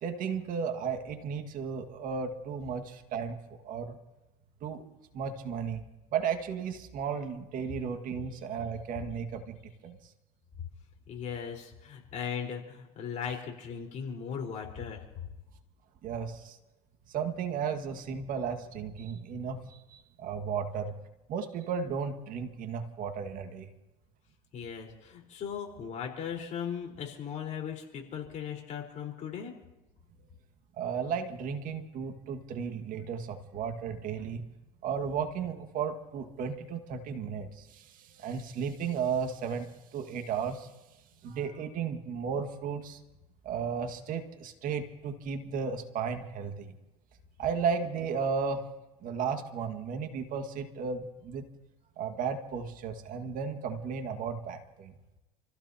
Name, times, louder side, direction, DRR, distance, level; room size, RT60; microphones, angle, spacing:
voice 1, 0.0-4.0 4.6-4.8 5.1-5.8 6.1-10.0 16.0-16.6 17.1-20.9 21.3-23.7 30.8-34.5 34.8-39.7 39.9-40.7 41.2-43.0 43.4-46.8 47.4-48.7 49.0-51.5 52.0-54.9, right 6 dB, 60° right, 6 dB, 1.9 m, -34 dB
voice 2, 11.1-15.2 24.5-29.5, left 7 dB, 50° left, 1 dB, 4.4 m, -38 dB
29.5 x 15.0 x 2.9 m, 1.0 s
supercardioid pair, 90°, 16 cm